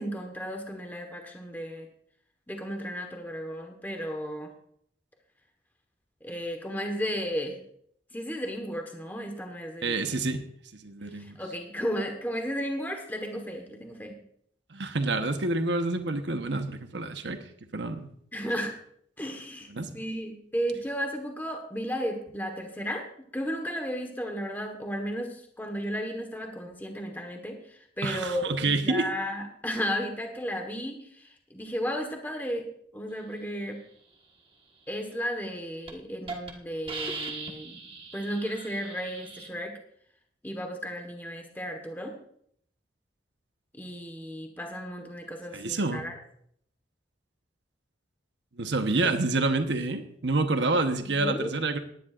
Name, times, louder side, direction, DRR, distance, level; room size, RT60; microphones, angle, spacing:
voice 1, 0.0-1.9 2.5-4.5 6.2-7.6 8.1-10.2 11.1-14.2 18.3-18.7 19.2-19.7 19.9-23.1 23.3-28.5 28.8-33.8 34.9-37.8 38.1-39.8 40.4-42.2 43.7-46.1 49.0-49.2 51.0-51.5, equal, 10° left, 3 dB, 1.3 m, -34 dB
voice 2, 9.8-10.4 10.7-11.4 14.7-17.4 17.7-18.1 19.7-20.0 28.0-29.1 45.5-46.0 48.6-51.8, right 3 dB, 80° right, 7 dB, 1.1 m, -28 dB
Hiss, 35.3-35.5 35.9-36.0 36.3-36.5 36.9-39.5, right 4 dB, 30° right, 1.4 m, -39 dB
19.0 x 10.5 x 2.5 m, 0.66 s
head